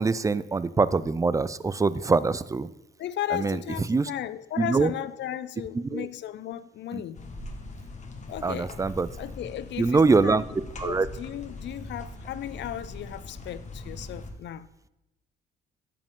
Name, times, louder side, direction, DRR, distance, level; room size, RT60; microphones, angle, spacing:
voice 1, 0.0-2.7 3.3-3.6 3.9-4.1 4.6-4.9 5.7-6.1 6.9-7.0 8.4-9.1 9.8-10.4 10.8-11.1, right 4 dB, 15° right, 17 dB, 0.3 m, -24 dB
voice 2, 3.0-7.2 8.3-8.7 9.2-10.4 10.8-14.7, left 11 dB, 65° left, 16 dB, 0.4 m, -35 dB
sound 1, 7.2-14.3, left 2 dB, 35° left, 1.4 m, -41 dB
10.5 x 7.5 x 3.7 m, 0.94 s
cardioid pair, 90°, 20 cm